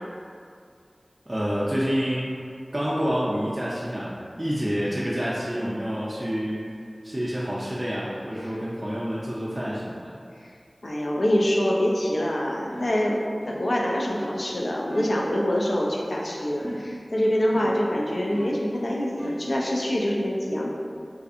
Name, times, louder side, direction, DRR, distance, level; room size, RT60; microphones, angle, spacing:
voice 1, 1.3-2.3 2.7-4.1 4.4-6.6 7.0-10.1, equal, 25° right, -8 dB, 0.4 m, -28 dB
voice 2, 10.8-13.2 13.5-20.7, equal, 75° left, -2 dB, 0.3 m, -25 dB
sound 1, 12.7-13.0 13.4-13.7 14.2-14.4 14.9-15.2 16.6-17.0 17.5-17.9 18.3-18.7 19.2-19.5, equal, 35° left, 1.1 m, -37 dB
2.5 x 2.4 x 2.4 m, 2.3 s
wide cardioid pair, 45°, 0 cm